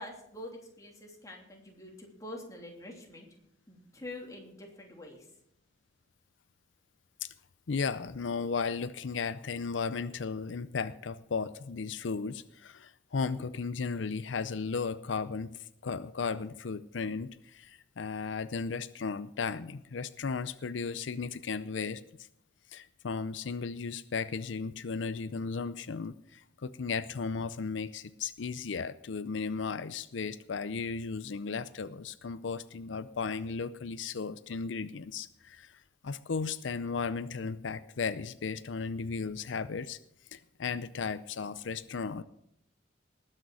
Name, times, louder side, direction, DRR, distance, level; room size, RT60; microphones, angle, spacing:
voice 1, 0.0-3.3 3.7-5.3, left 1 dB, 20° left, 0 dB, 3.0 m, -45 dB
voice 2, 7.7-22.3 22.7-40.0 40.3-42.2, left 5 dB, 85° left, 14 dB, 0.6 m, -35 dB
19.5 x 6.6 x 6.3 m, 0.74 s
head